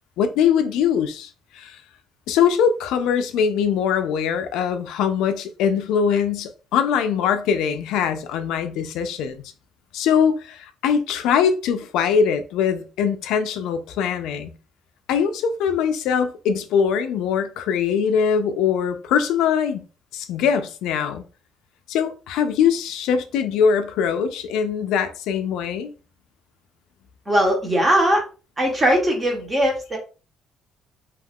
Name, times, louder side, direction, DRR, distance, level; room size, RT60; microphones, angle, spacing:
voice 1, 0.2-1.8 2.3-9.4 9.9-14.5 15.1-19.8 20.1-21.2 21.9-25.9, left 7 dB, 90° left, 0.4 m, -22 dB
voice 2, 27.3-28.2 28.6-30.0, equal, 15° right, 0.9 m, -19 dB
2.4 x 2.3 x 3.4 m
cardioid pair, 160°, 0 cm